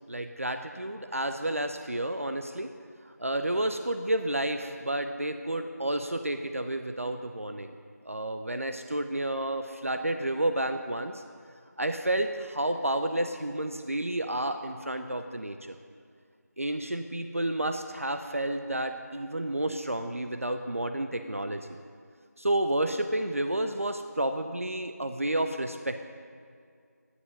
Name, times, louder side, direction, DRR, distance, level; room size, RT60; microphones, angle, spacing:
voice 1, 0.1-2.7 3.2-7.8 8.1-11.2 11.8-15.7 16.6-21.8 22.4-26.0, right 1 dB, 55° right, 7 dB, 0.7 m, -30 dB
17.0 x 9.8 x 5.4 m, 2.2 s
figure-of-eight pair, 175°, 9 cm